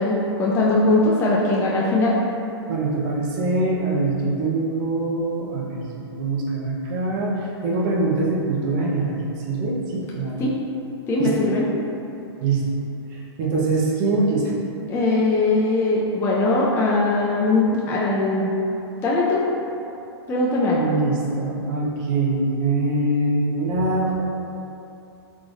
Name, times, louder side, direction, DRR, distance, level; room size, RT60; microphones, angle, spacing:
voice 1, 0.0-2.2 10.4-10.5 11.1-11.7 14.9-18.5 19.0-19.4 20.3-21.0, left 2 dB, 15° left, -5 dB, 0.4 m, -20 dB
voice 2, 2.7-10.5 11.2-11.3 12.4-12.6 13.1-14.5 20.8-24.2, right 2 dB, 40° right, -4 dB, 0.8 m, -23 dB
3.7 x 2.5 x 3.3 m, 2.8 s
hypercardioid pair, 130°, 14 cm